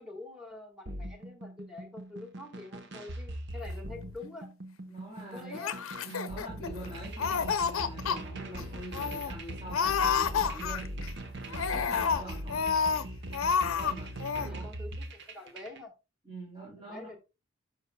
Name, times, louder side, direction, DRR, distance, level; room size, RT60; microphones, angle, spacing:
voice 1, 0.0-4.5 5.2-5.8 14.4-15.9 16.9-17.2, left 2 dB, 5° right, 3 dB, 1.6 m, -46 dB
sound 1, 0.9-15.8, right 1 dB, 55° right, 1.0 m, -41 dB
voice 2, 4.9-5.6 6.0-10.9 11.5-12.7 13.6-14.1 14.4-14.7 16.2-17.2, right 2 dB, 25° right, -5 dB, 3.1 m, -44 dB
Laughter, 5.5-6.9 7.2-8.2 8.6-8.7 8.9-9.3 9.7-11.1 11.5-13.0 13.3-13.9 14.2-14.5, left 6 dB, 80° left, 0.6 m, -29 dB
12.0 x 6.0 x 2.2 m, 0.27 s
head